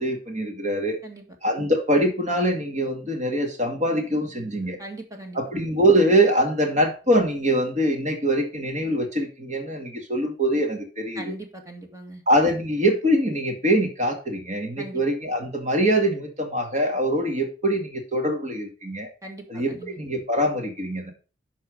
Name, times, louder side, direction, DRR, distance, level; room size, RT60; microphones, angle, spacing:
voice 1, 0.0-1.0 1.4-4.8 5.3-11.3 12.3-19.1 19.5-21.1, right 1 dB, 40° right, 3 dB, 2.2 m, -23 dB
voice 2, 4.8-5.4 11.1-12.2 14.8-15.0 19.2-19.9, right 1 dB, 20° right, 3 dB, 1.7 m, -39 dB
11.5 x 4.2 x 5.1 m, 0.34 s
head